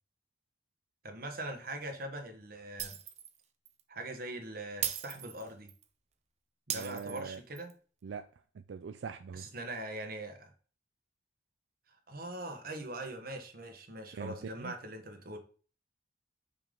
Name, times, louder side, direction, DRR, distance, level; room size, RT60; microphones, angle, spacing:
voice 1, 1.0-3.0 3.9-5.7 6.7-7.7 9.3-10.5 11.9-15.4, right 1 dB, 55° right, 1.3 m, -42 dB
Shatter, 2.8-3.4 3.7-3.8 4.8-5.8 6.7-7.7, right 9 dB, 40° right, 0.7 m, -38 dB
voice 2, 6.7-7.4 8.0-9.5 14.1-14.7, right 5 dB, 85° right, 0.4 m, -42 dB
5.6 x 3.8 x 5.3 m
head